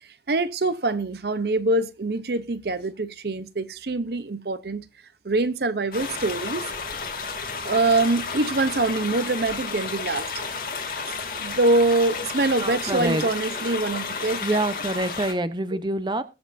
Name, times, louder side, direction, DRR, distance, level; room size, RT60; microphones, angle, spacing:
voice 1, 0.3-4.9 5.2-6.7 7.6-10.3 11.4-14.4, right 2 dB, 65° right, 0.7 m, -24 dB
sound 1, 5.9-15.3, left 5 dB, 55° left, 2.7 m, -32 dB
voice 2, 12.6-13.3 14.4-16.2, right 2 dB, 25° right, 0.8 m, -26 dB
21.5 x 7.9 x 2.6 m
head